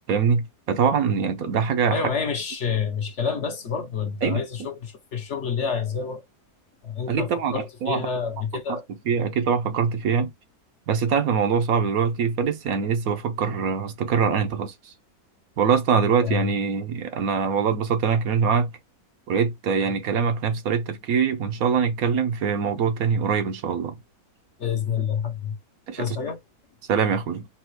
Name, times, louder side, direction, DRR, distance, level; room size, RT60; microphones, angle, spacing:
voice 1, 0.1-2.0 4.2-4.7 7.1-8.1 8.7-8.8 9.1-10.3 10.9-14.7 15.6-18.7 19.3-23.9 25.9-26.0 26.9-27.5, right 6 dB, 70° right, 1.1 m, -23 dB
voice 2, 1.9-6.2 6.8-8.8 16.2-16.5 24.6-25.5 26.0-26.4, left 6 dB, 55° left, 1.0 m, -28 dB
4.1 x 2.3 x 4.5 m
omnidirectional pair, 1.6 m